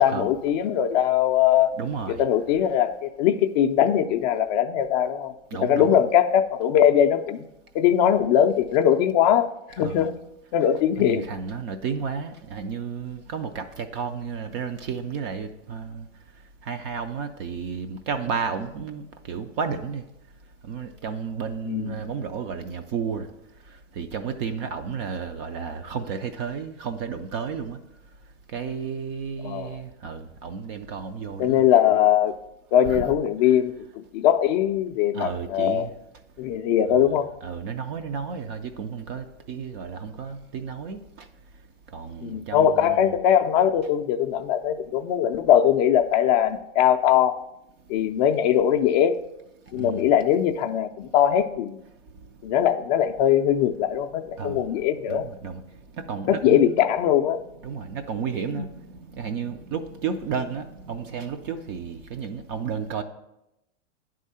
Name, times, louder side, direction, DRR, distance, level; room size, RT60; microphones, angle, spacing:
voice 1, 0.0-1.7 2.1-5.3 5.6-7.4 7.7-9.5 9.8-10.1 10.5-11.2 21.7-22.0 29.4-29.8 31.4-32.4 32.7-35.9 36.4-37.3 42.2-47.4 47.9-49.2 49.7-51.8 52.4-55.3 56.3-57.4 58.5-58.7, left 10 dB, 40° left, 6 dB, 0.4 m, -21 dB
voice 2, 1.8-2.2 5.5-6.0 9.8-10.1 11.0-16.1 16.6-20.0 20.6-23.3 23.7-27.8 28.5-31.7 32.9-33.0 35.1-35.9 36.9-37.1 37.4-41.3 41.9-43.1 49.7-50.1 52.1-52.4 54.4-54.7 55.1-56.8 57.6-63.0, right 6 dB, 30° right, 8 dB, 0.3 m, -32 dB
9.3 x 3.7 x 5.5 m, 0.87 s
hypercardioid pair, 125°, 35 cm